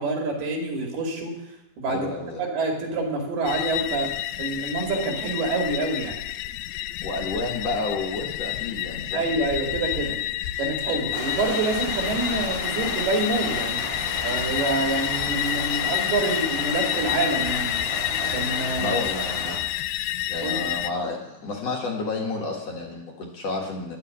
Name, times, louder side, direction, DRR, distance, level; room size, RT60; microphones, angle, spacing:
voice 1, 0.0-1.3 1.8-2.1 2.4-4.1 4.4-6.2 9.1-10.2 10.6-13.8 14.2-17.8 18.3-19.0 20.4-20.6, right 3 dB, 90° right, 1 dB, 4.5 m, -27 dB
voice 2, 1.9-2.4 7.0-9.3 18.8-19.9 20.3-24.0, left 3 dB, 55° left, -1 dB, 2.2 m, -31 dB
sound 1, 3.5-20.9, left 14 dB, 90° left, 2.5 m, -29 dB
sound 2, 11.1-19.6, equal, 15° right, 4.9 m, -34 dB
11.0 x 7.7 x 8.4 m, 0.86 s
omnidirectional pair, 4.4 m